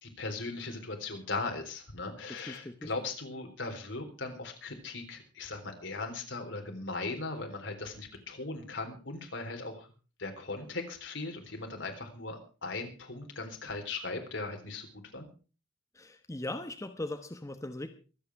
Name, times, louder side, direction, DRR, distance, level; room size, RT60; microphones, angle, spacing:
voice 1, 0.0-9.9 10.2-14.9 15.1-15.3, left 3 dB, 70° left, 4 dB, 3.8 m, -38 dB
voice 2, 2.4-2.9 16.0-17.9, left 1 dB, 15° left, 6 dB, 1.1 m, -39 dB
24.5 x 8.5 x 4.7 m, 0.37 s
head